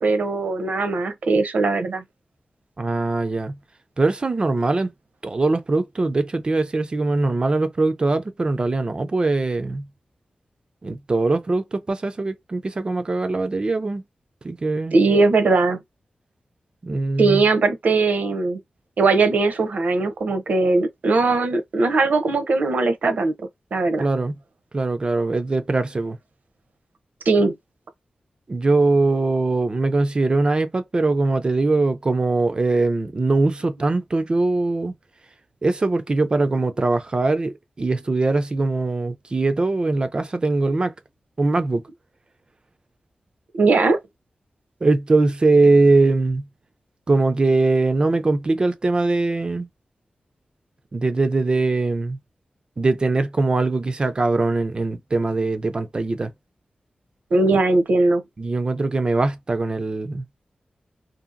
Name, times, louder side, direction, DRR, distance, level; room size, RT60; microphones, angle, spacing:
voice 1, 0.0-2.0 14.9-15.8 17.2-18.6 19.0-23.3 23.7-24.1 27.3-27.5 43.5-44.0 57.3-58.2, right 3 dB, 75° right, 0.6 m, -19 dB
voice 2, 2.8-3.6 4.0-4.9 5.2-9.9 10.8-14.0 14.4-15.0 16.8-17.4 24.0-24.3 24.7-26.2 28.5-34.9 35.6-40.9 41.4-41.8 44.8-46.5 47.1-49.7 50.9-52.2 52.8-56.3 57.5-57.6 58.4-60.2, right 3 dB, 35° right, 0.4 m, -21 dB
2.8 x 2.5 x 2.5 m
wide cardioid pair, 110°, 3 cm